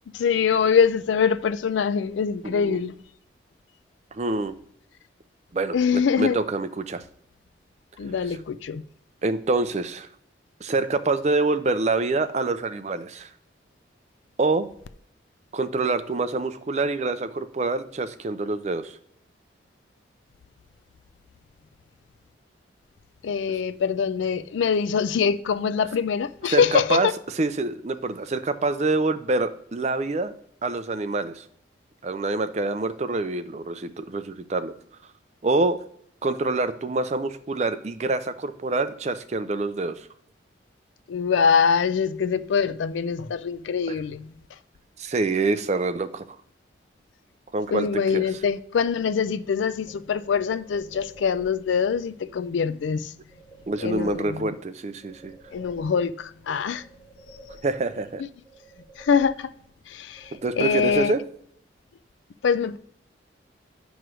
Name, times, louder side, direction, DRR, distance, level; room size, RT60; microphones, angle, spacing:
voice 1, 0.1-2.9 5.7-6.4 8.0-8.8 23.2-27.1 41.1-44.3 47.7-53.1 53.8-54.4 55.5-56.8 59.0-59.5 59.9-61.2 62.4-62.8, left 6 dB, 85° left, 0.4 m, -24 dB
voice 2, 2.4-2.8 4.1-4.5 5.5-7.0 9.2-10.1 10.6-13.3 14.4-14.7 15.5-19.0 26.5-27.1 27.3-30.3 30.6-31.4 32.0-34.7 35.4-35.8 36.2-40.1 43.9-44.0 45.0-46.4 47.5-48.3 53.7-55.4 57.6-58.2 60.4-61.2, right 3 dB, 35° right, 0.4 m, -26 dB
sound 1, 49.9-51.8 53.3-54.7 55.0-56.4 56.7-58.1 58.4-59.8 60.1-61.5, right 1 dB, 5° right, 2.5 m, -49 dB
9.1 x 3.1 x 6.1 m
head